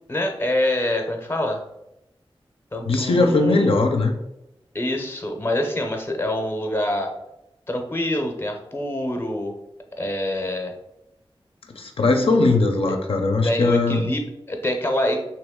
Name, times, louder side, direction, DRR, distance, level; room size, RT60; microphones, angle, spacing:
voice 1, 0.1-1.6 2.7-3.7 4.7-7.1 7.7-9.5 9.9-10.8 13.4-15.2, left 1 dB, 25° left, 3 dB, 0.6 m, -25 dB
voice 2, 2.9-4.1 11.8-14.1, left 3 dB, 75° left, 3 dB, 0.4 m, -19 dB
3.0 x 2.8 x 3.5 m, 0.86 s
wide cardioid pair, 90°, 10 cm